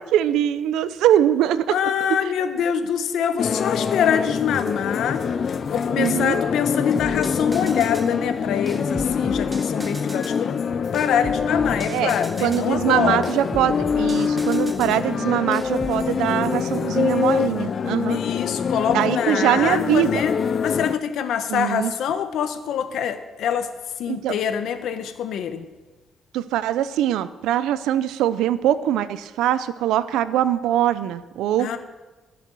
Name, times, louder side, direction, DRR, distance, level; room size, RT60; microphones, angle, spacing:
voice 1, 0.0-1.8 2.1-2.2 6.0-6.4 11.9-12.1 12.4-18.2 18.9-20.2 21.5-21.9 24.1-24.4 26.3-31.8, right 11 dB, 90° right, 15 dB, 0.6 m, -22 dB
voice 2, 1.7-5.2 5.7-10.6 10.9-13.3 18.1-23.7 24.0-25.6 31.6-31.8, left 8 dB, 75° left, 9 dB, 1.1 m, -25 dB
sound 1, 3.4-20.9, left 6 dB, 50° left, 0.6 m, -25 dB
sound 2, 6.9-8.1 8.7-10.4 10.9-12.7 13.2-15.0 15.5-16.0, right 1 dB, 15° right, 1.1 m, -37 dB
15.5 x 7.0 x 6.3 m, 1.2 s
cardioid pair, 90°, 0 cm